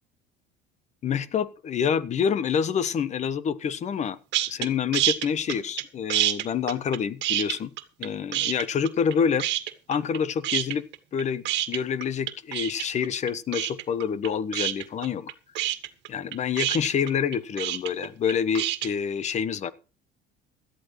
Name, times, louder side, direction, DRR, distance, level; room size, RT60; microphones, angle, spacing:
voice 1, 1.0-4.2 4.5-7.7 8.0-9.4 9.9-10.9 11.1-15.3 16.1-19.7, left 7 dB, 35° left, 16 dB, 1.2 m, -27 dB
sound 1, 4.3-4.7 4.9-5.8 6.1-8.1 8.3-9.1 9.4-10.2 10.4-18.9, right 14 dB, 60° right, 1.9 m, -27 dB
17.5 x 13.0 x 3.2 m, 0.34 s
cardioid pair, 140°, 21 cm